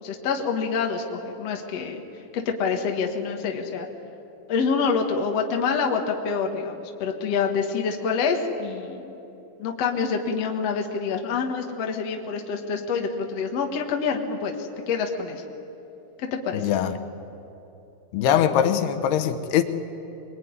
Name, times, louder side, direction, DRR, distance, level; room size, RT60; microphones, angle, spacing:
voice 1, 0.0-2.0 2.3-3.9 4.5-9.2 9.6-15.4 16.2-16.7, left 5 dB, 55° left, 3 dB, 1.9 m, -27 dB
voice 2, 16.5-16.9 18.1-19.6, left 9 dB, 75° left, 9 dB, 3.0 m, -22 dB
24.5 x 21.5 x 9.6 m, 3.0 s
omnidirectional pair, 5.0 m